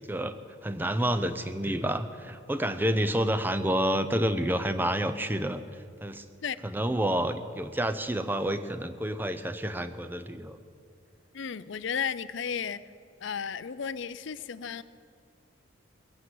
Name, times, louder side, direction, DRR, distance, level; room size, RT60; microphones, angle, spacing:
voice 1, 0.6-5.6 6.0-6.2 6.6-10.6, right 1 dB, 10° right, 10 dB, 0.6 m, -29 dB
voice 2, 11.3-12.8 13.2-14.8, left 7 dB, 65° left, 15 dB, 0.5 m, -33 dB
21.5 x 8.5 x 7.8 m, 2.3 s
head